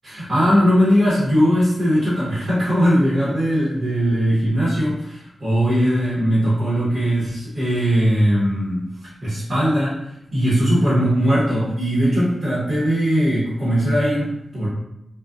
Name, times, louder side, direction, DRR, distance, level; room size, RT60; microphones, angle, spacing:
voice 1, 0.0-8.8 9.2-10.0 10.3-14.7, equal, 40° right, -9 dB, 1.0 m, -19 dB
2.4 x 2.2 x 2.4 m, 0.84 s
wide cardioid pair, 140°, 0 cm